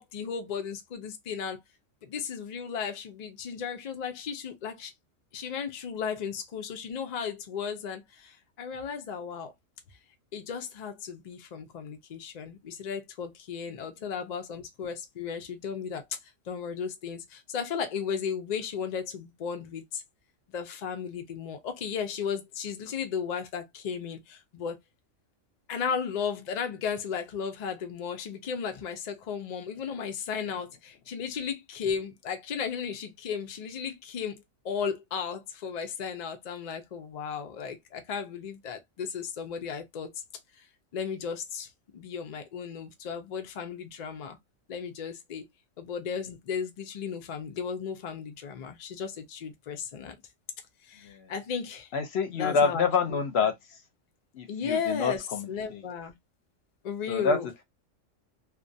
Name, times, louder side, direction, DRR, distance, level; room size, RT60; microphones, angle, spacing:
voice 1, 0.0-1.6 2.0-4.9 5.3-9.5 10.3-20.0 20.5-24.8 25.7-40.2 40.5-40.7 40.9-44.4 44.7-45.4 45.8-50.2 50.8-51.9 52.4-53.2 54.5-56.2 56.8-57.5, left 6 dB, 85° left, 0.3 m, -35 dB
voice 2, 51.9-53.5 54.3-55.8 57.1-57.4, left 5 dB, 65° left, 0.7 m, -27 dB
2.3 x 2.2 x 2.5 m
omnidirectional pair, 1.4 m